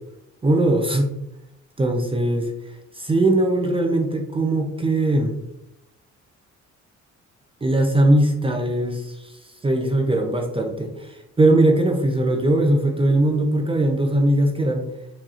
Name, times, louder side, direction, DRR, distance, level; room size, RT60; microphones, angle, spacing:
voice 1, 0.4-1.1 1.8-2.5 2.9-5.4 7.6-9.3 9.6-14.9, right 1 dB, 20° right, 2 dB, 0.5 m, -20 dB
4.8 x 2.8 x 2.5 m, 0.86 s
cardioid pair, 90°, 30 cm